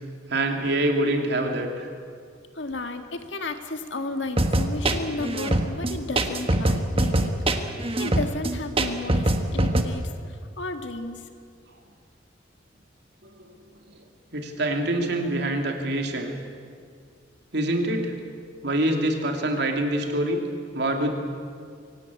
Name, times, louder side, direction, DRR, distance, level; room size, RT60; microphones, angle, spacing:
voice 1, 0.3-1.9 13.2-13.5 13.9-14.0 14.3-16.3 17.5-18.1 18.6-20.4 20.7-21.1, right 1 dB, 65° right, 3 dB, 2.9 m, -25 dB
voice 2, 2.5-7.3 8.0-11.2, left 2 dB, 80° left, 6 dB, 1.9 m, -33 dB
sound 1, 4.4-9.8, right 1 dB, 30° right, 1.4 m, -23 dB
24.0 x 17.5 x 8.6 m, 2.2 s
head